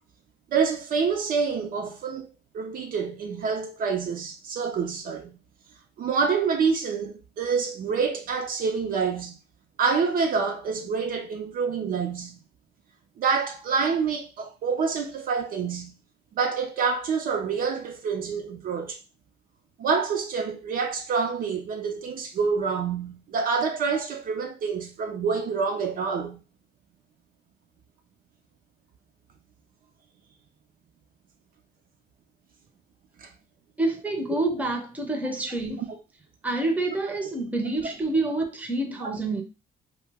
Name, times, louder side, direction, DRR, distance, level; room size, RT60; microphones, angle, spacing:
voice 1, 0.5-2.3 2.5-5.4 6.0-9.4 9.8-12.4 13.2-16.0 16.4-19.0 19.8-26.4 33.2-33.3 39.0-39.1, right 5 dB, 60° right, 0.5 m, -27 dB
voice 2, 33.8-35.9 36.4-39.4, right 2 dB, 10° right, 0.6 m, -27 dB
2.7 x 2.1 x 3.3 m
cardioid pair, 110°, 17 cm